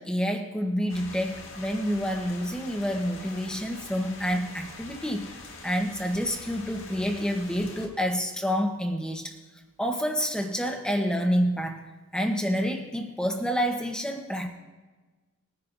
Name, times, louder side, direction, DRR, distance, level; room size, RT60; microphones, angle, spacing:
voice 1, 0.0-9.3 9.8-11.8 12.1-14.5, equal, 5° left, 3 dB, 0.9 m, -28 dB
sound 1, 0.9-7.9, left 3 dB, 70° left, 1.8 m, -44 dB
20.5 x 10.5 x 2.6 m, 1.3 s
head